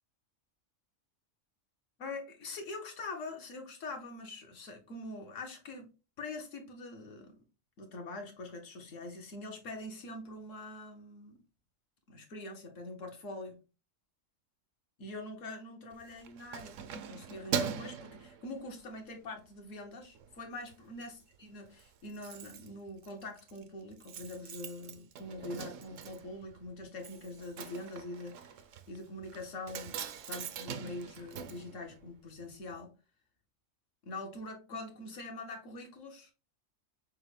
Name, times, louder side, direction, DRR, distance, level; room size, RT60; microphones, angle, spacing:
voice 1, 2.0-5.9 6.2-7.4 7.8-11.4 12.1-13.6 15.0-28.5 28.9-32.9 34.0-36.3, left 2 dB, 70° left, 1.3 m, -44 dB
Keys jangling, 15.9-19.0 19.5-19.7 20.0-20.7 21.0-21.1 21.3-21.4 21.6-32.5 32.7-32.8, right 7 dB, 75° right, 0.9 m, -42 dB
6.3 x 2.1 x 3.1 m
omnidirectional pair, 1.4 m